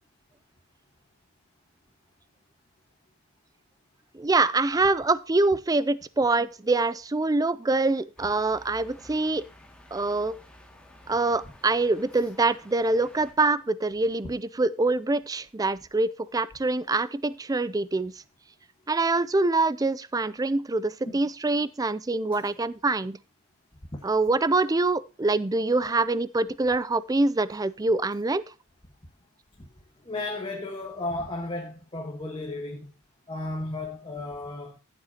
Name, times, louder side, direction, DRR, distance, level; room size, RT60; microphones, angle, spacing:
voice 1, 4.1-9.4 9.9-10.4 11.1-18.1 18.9-23.2 24.0-28.4, right 3 dB, 15° right, 0.4 m, -25 dB
sound 1, 8.2-13.3, left 1 dB, 5° left, 2.1 m, -52 dB
voice 2, 30.0-32.9 33.3-34.8, left 2 dB, 25° left, 1.4 m, -34 dB
14.5 x 7.7 x 2.9 m
head